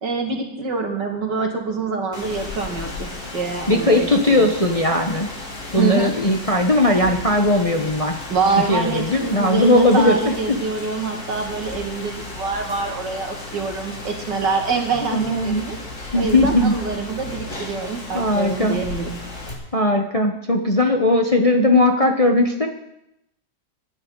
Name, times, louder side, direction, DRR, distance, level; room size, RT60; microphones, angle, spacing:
voice 1, 0.0-4.8 5.7-6.1 8.3-15.8 16.1-19.2, right 4 dB, 75° right, 2 dB, 2.8 m, -25 dB
Rain, 2.1-19.5, left 2 dB, 40° left, 3.0 m, -34 dB
voice 2, 3.7-5.3 5.7-8.2 8.7-10.3 15.1-15.7 16.1-16.8 18.1-18.8 19.7-22.7, left 1 dB, 25° left, 3 dB, 1.0 m, -18 dB
25.0 x 10.5 x 4.0 m, 0.82 s
omnidirectional pair, 1.9 m